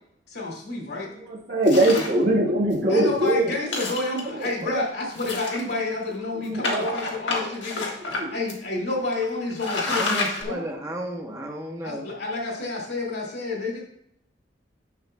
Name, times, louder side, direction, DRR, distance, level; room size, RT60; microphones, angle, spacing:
voice 1, 0.3-1.1 2.9-10.6 11.8-13.8, left 2 dB, 65° left, -1 dB, 2.3 m, -30 dB
voice 2, 1.1-3.5 4.2-4.8 6.3-7.0 8.1-8.3, right 1 dB, 60° right, -5 dB, 1.6 m, -22 dB
sound 1, 1.7-2.2 2.7-2.8 3.1-3.3 3.6-4.4 5.1-5.9 6.6-8.2 8.5-8.6 9.1-9.2 9.5-10.4, left 3 dB, 80° left, 1.5 m, -28 dB
voice 3, 9.8-12.1, right 1 dB, 15° right, 0 dB, 0.9 m, -33 dB
10.5 x 6.5 x 2.2 m, 0.74 s
head